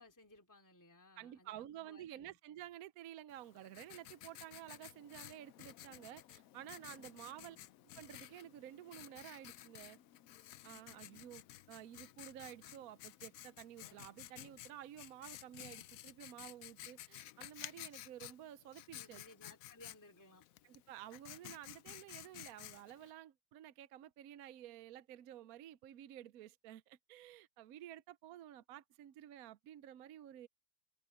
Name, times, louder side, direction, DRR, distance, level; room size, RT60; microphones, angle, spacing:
voice 1, 0.0-2.4 7.3-7.7 18.9-20.5, left 2 dB, 10° left, 2.5 m, -61 dB
voice 2, 1.2-7.6 7.9-10.0 10.6-11.4 11.7-19.2 20.6-30.5, right 12 dB, 65° right, 1.0 m, -52 dB
Writing, 3.3-23.1, left 13 dB, 70° left, 0.8 m, -54 dB
omnidirectional pair, 1.9 m